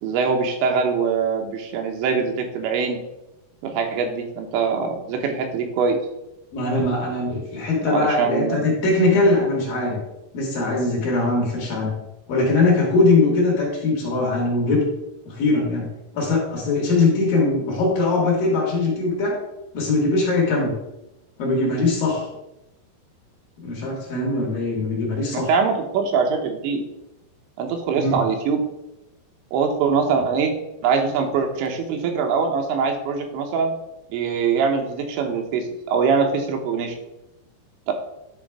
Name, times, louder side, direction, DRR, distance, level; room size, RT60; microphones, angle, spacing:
voice 1, 0.0-3.0 3.6-6.0 7.8-8.7 25.3-26.8 27.6-28.6 29.5-30.5 30.8-33.7 34.1-37.0 37.9-38.0, right 5 dB, 85° right, 4 dB, 3.3 m, -23 dB
voice 2, 6.5-10.0 10.3-11.9 12.3-14.8 15.3-15.9 16.1-19.4 19.7-20.7 21.4-22.3 23.6-25.5 28.0-28.2, left 2 dB, 60° left, -2 dB, 3.1 m, -21 dB
10.5 x 4.4 x 4.7 m, 0.90 s
omnidirectional pair, 5.1 m